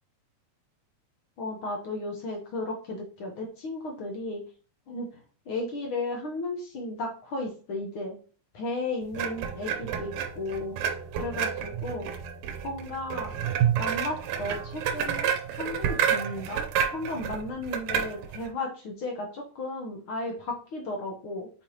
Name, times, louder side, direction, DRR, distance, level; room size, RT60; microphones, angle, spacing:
voice 1, 1.4-4.4 4.9-5.2 5.5-8.2 8.5-10.8 11.2-12.1 12.6-13.3 13.8-21.5, left 2 dB, 65° left, 1 dB, 1.4 m, -34 dB
sound 1, 9.1-18.5, right 8 dB, 85° right, 2.4 m, -30 dB
7.1 x 4.7 x 2.9 m, 0.39 s
omnidirectional pair, 3.7 m